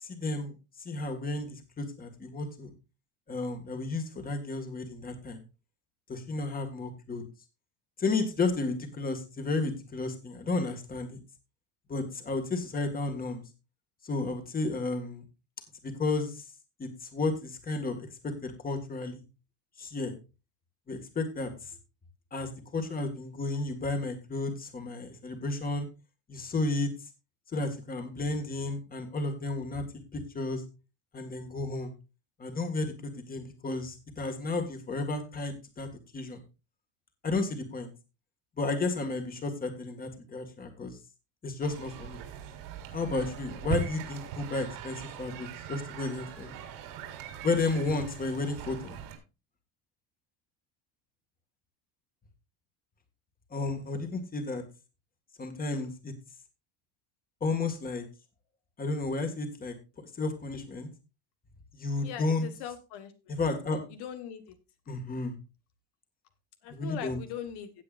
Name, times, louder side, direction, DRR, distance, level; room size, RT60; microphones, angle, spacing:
voice 1, 0.0-2.7 3.3-5.4 6.1-7.2 8.0-11.2 11.9-13.4 14.0-15.2 15.8-16.5 16.8-19.2 19.8-20.1 20.9-21.8 22.3-25.9 26.3-26.9 27.5-29.8 30.1-30.6 31.1-31.9 32.4-36.4 37.2-37.9 38.6-41.0 41.4-42.2 42.9-46.6 47.4-49.0 53.5-54.6 55.4-56.1 57.4-58.1 58.8-60.9 61.7-62.5 63.3-63.8 64.9-65.3 66.7-67.2, left 3 dB, 20° left, 6 dB, 2.0 m, -32 dB
sound 1, 41.6-49.2, right 8 dB, 85° right, 3.6 m, -40 dB
voice 2, 62.0-63.1 63.9-64.5 66.6-67.7, left 9 dB, 70° left, 8 dB, 1.5 m, -40 dB
17.0 x 7.8 x 2.5 m, 0.29 s
cardioid pair, 145°, 41 cm